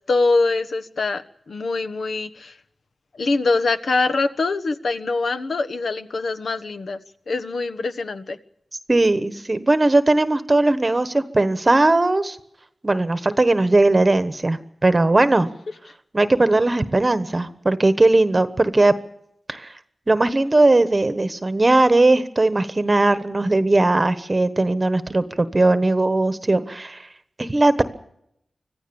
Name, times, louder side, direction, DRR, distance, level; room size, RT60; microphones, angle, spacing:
voice 1, 0.1-2.5 3.2-7.0 7.3-8.4, left 3 dB, 70° left, 10 dB, 1.3 m, -23 dB
voice 2, 8.9-12.4 12.8-15.5 16.1-18.9 19.5-19.7 20.1-27.1 27.4-27.8, right 2 dB, 25° right, 12 dB, 1.2 m, -18 dB
25.5 x 15.5 x 7.1 m, 0.74 s
wide cardioid pair, 135°, 0 cm